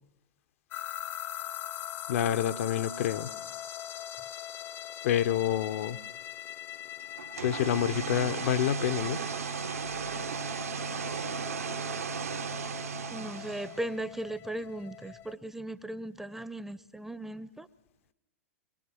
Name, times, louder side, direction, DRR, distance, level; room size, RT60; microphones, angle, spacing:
sound 1, 0.7-15.3, left 12 dB, 30° left, 0.8 m, -42 dB
voice 1, 2.1-3.3 5.0-6.0 7.4-9.2, left 10 dB, 60° left, 11 dB, 1.0 m, -28 dB
sound 2, 7.2-13.9, right 6 dB, 75° right, 1.5 m, -36 dB
voice 2, 13.1-17.7, right 1 dB, 5° right, 15 dB, 0.8 m, -37 dB
26.0 x 22.5 x 6.3 m, 0.93 s
figure-of-eight pair, 100°, 8 cm